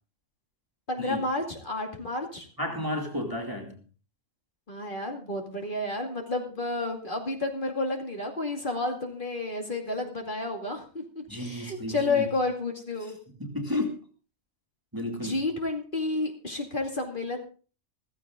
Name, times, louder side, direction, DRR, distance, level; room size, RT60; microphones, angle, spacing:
voice 1, 0.9-2.5 4.7-13.2 15.1-17.4, left 2 dB, 40° left, 2.5 m, -31 dB
voice 2, 2.6-3.8 11.3-12.3 13.4-14.0 14.9-15.4, left 1 dB, 15° right, 2.6 m, -32 dB
15.0 x 15.0 x 3.8 m
omnidirectional pair, 1.3 m